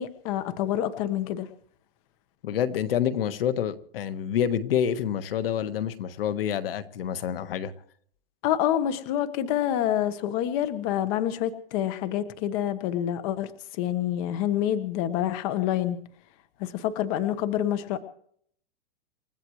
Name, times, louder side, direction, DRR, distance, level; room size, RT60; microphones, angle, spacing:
voice 1, 0.0-1.5 8.4-13.5 13.8-16.0 16.6-18.0, left 11 dB, 40° left, 11 dB, 1.3 m, -27 dB
voice 2, 2.4-7.7, left 9 dB, 75° left, 10 dB, 1.5 m, -27 dB
29.0 x 14.5 x 3.2 m, 0.62 s
supercardioid pair, 160°, 29 cm